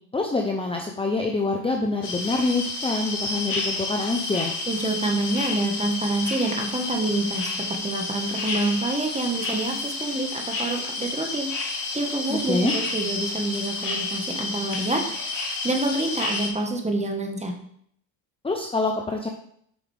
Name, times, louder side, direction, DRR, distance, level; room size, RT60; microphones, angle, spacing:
voice 1, 0.1-4.5 12.3-12.7 18.4-19.3, left 3 dB, 10° left, 2 dB, 0.8 m, -26 dB
sound 1, 2.0-16.5, left 3 dB, 40° left, 2.3 m, -30 dB
voice 2, 4.7-17.5, right 2 dB, 15° right, 2 dB, 1.7 m, -27 dB
8.6 x 5.7 x 3.6 m, 0.66 s
supercardioid pair, 90°, 47 cm